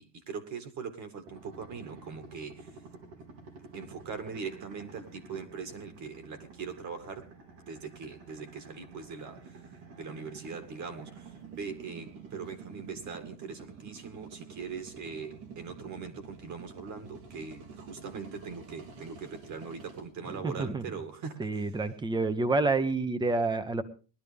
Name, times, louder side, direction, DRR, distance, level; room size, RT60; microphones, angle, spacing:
voice 1, 0.0-2.7 3.7-7.3 7.7-9.5 9.9-21.6, right 5 dB, 40° right, 9 dB, 2.0 m, -41 dB
sound 1, 1.3-20.0, right 4 dB, 85° right, 4.5 m, -49 dB
voice 2, 20.3-20.8 21.4-23.8, right 3 dB, 10° right, 13 dB, 0.8 m, -28 dB
20.0 x 12.5 x 3.4 m, 0.36 s
cardioid pair, 165°, 46 cm